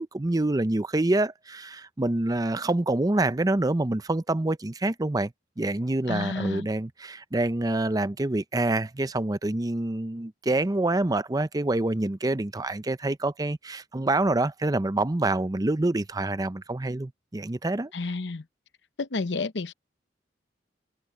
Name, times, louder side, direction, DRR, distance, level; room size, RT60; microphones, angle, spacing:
voice 1, 0.0-17.9, right 2 dB, 20° right, 0.6 m, -26 dB
voice 2, 6.1-6.7 17.9-18.4 19.0-19.7, left 3 dB, 75° left, 0.9 m, -30 dB
open air
head